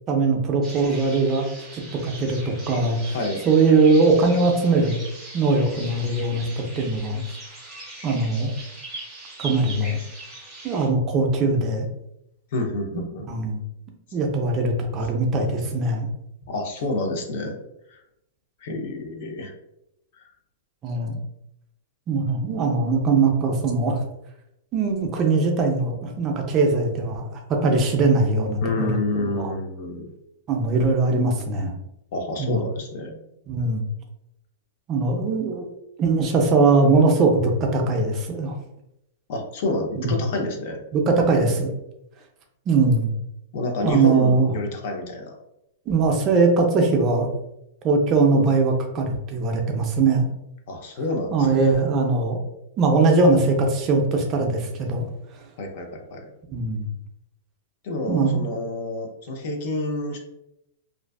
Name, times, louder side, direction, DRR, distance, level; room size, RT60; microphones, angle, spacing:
voice 1, 0.1-1.5 1.7-3.2 3.5-5.0 5.3-7.2 8.0-8.5 9.4-10.0 10.6-11.9 13.3-13.6 14.1-16.1 20.8-21.2 22.1-24.0 24.7-29.0 29.4-29.5 30.5-31.7 32.4-32.6 33.5-33.9 34.9-35.7 36.0-38.6 40.0-40.2 40.9-41.7 42.7-43.1 43.8-44.5 45.9-47.3 47.8-50.3 51.3-52.4 52.8-55.1 56.5-56.9 58.1-58.4, right 3 dB, 20° right, 2 dB, 0.3 m, -21 dB
sound 1, 0.6-10.9, right 2 dB, 5° right, 0.8 m, -40 dB
voice 2, 3.1-3.5 12.5-13.3 16.5-17.6 17.9-18.0 18.6-19.5 20.1-20.3 28.6-30.1 32.1-33.2 39.3-40.8 43.5-45.4 50.7-51.5 55.6-56.3 57.8-60.2, left 2 dB, 45° left, 3 dB, 0.4 m, -28 dB
2.5 x 2.2 x 2.3 m, 0.84 s
supercardioid pair, 175°, 0 cm